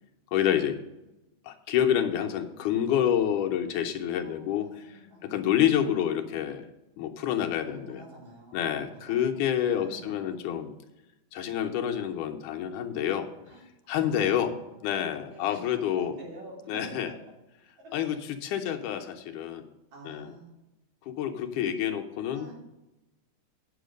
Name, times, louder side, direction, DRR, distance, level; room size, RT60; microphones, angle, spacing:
voice 1, 0.3-0.8 1.5-4.7 5.2-6.7 7.0-8.0 8.5-10.7 11.3-13.3 13.9-14.5 14.8-16.1 16.7-17.1 17.9-18.2 18.4-19.6 20.1-20.3 21.1-22.5, left 10 dB, 80° left, 4 dB, 2.2 m, -28 dB
voice 2, 4.2-5.4 5.8-6.0 7.7-10.3 13.5-13.6 13.9-14.9 15.3-15.6 15.9-17.2 17.8-18.1 19.9-20.6 22.3-22.5, right 1 dB, 80° right, -4 dB, 5.3 m, -48 dB
9.2 x 7.2 x 5.1 m, 0.96 s
omnidirectional pair, 3.8 m